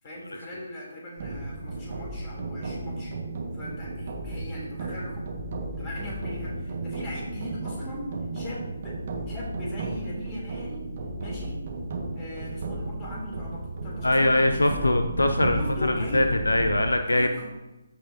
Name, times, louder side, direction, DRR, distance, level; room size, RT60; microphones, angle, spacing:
voice 1, 0.0-3.1 3.5-5.3 5.8-9.0 9.3-10.9 11.2-11.6 12.1-14.9 15.5-16.3 17.0-17.5, left 1 dB, 25° left, -4 dB, 3.2 m, -39 dB
sound 1, 1.2-16.8, right 2 dB, 45° right, 1.6 m, -34 dB
voice 2, 14.0-17.3, left 1 dB, 75° left, 7 dB, 0.6 m, -22 dB
14.5 x 5.6 x 2.8 m, 1.0 s
figure-of-eight pair, 145°, 0 cm